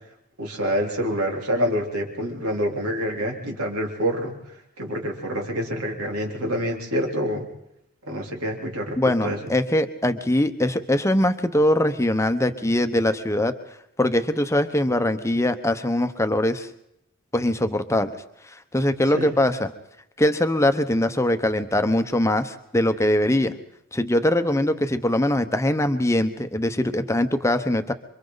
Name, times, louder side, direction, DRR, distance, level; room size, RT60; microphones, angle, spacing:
voice 1, 0.4-4.3 4.8-7.5 8.1-9.4 19.1-19.3, equal, 85° right, 1 dB, 3.6 m, -27 dB
voice 2, 9.0-13.5 14.0-16.7 17.3-18.1 18.7-19.7 20.2-23.5 23.9-27.9, left 1 dB, 15° left, 9 dB, 1.0 m, -22 dB
28.0 x 25.0 x 4.0 m, 0.78 s
head